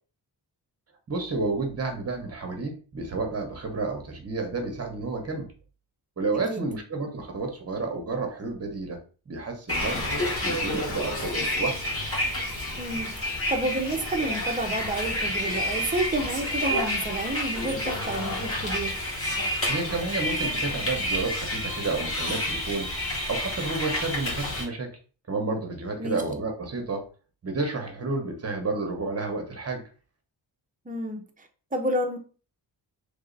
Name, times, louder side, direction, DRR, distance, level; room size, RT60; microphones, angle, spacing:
voice 1, 1.1-5.5 6.2-9.0 9.3-11.8 19.7-22.9 23.3-24.9 25.3-27.1 27.4-29.8, right 3 dB, 35° right, 4 dB, 1.0 m, -31 dB
voice 2, 6.3-6.7 12.8-19.0 26.0-26.2 30.9-32.2, right 1 dB, 20° right, 3 dB, 0.7 m, -30 dB
Bus, 9.7-24.6, left 1 dB, 30° left, 1.6 m, -29 dB
3.3 x 2.7 x 3.8 m, 0.37 s
wide cardioid pair, 120°, 44 cm